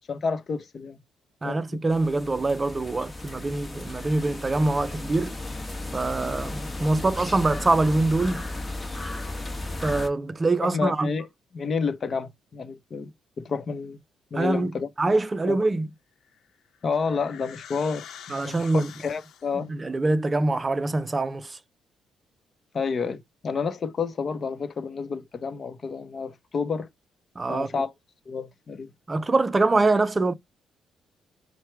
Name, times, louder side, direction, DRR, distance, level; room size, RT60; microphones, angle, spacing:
voice 1, 0.1-1.0 1.4-1.8 10.6-11.3 11.5-14.0 14.3-14.9 15.4-15.6 16.8-19.7 22.7-26.9 27.5-27.9 28.3-28.9, left 5 dB, 45° left, 0.8 m, -30 dB
voice 2, 1.4-5.3 5.9-8.5 9.8-11.1 14.4-14.7 15.0-15.9 18.3-18.9 19.6-21.6 27.4-27.7 29.1-30.3, right 2 dB, 25° right, 0.5 m, -24 dB
sound 1, 1.9-10.1, left 2 dB, 15° left, 1.3 m, -35 dB
sound 2, 16.2-19.7, left 9 dB, 70° left, 0.9 m, -46 dB
4.6 x 2.2 x 4.5 m
cardioid pair, 90°, 0 cm